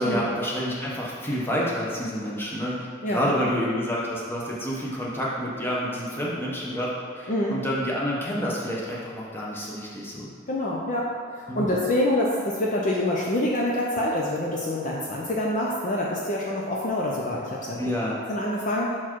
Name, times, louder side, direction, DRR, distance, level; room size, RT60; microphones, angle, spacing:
voice 1, 0.0-10.3 11.5-11.7 17.8-18.2, equal, 10° left, -5 dB, 0.9 m, -28 dB
voice 2, 7.3-7.6 10.5-17.9 18.3-19.0, left 1 dB, 40° left, -3 dB, 0.5 m, -26 dB
5.8 x 4.5 x 4.5 m, 2.2 s
head